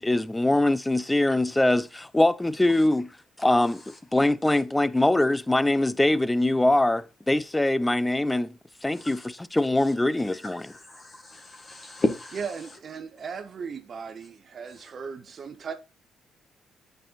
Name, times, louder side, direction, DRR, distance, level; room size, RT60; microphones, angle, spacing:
voice 1, 0.0-3.1 3.4-3.8 4.1-9.2 9.5-10.6, left 1 dB, 10° left, 0.5 m, -23 dB
voice 2, 8.9-9.3 9.8-12.5 14.8-14.9, left 2 dB, 35° left, 1.7 m, -34 dB
voice 3, 12.4-15.7, right 6 dB, 50° right, 0.9 m, -37 dB
8.5 x 5.4 x 2.4 m
cardioid pair, 90°, 0 cm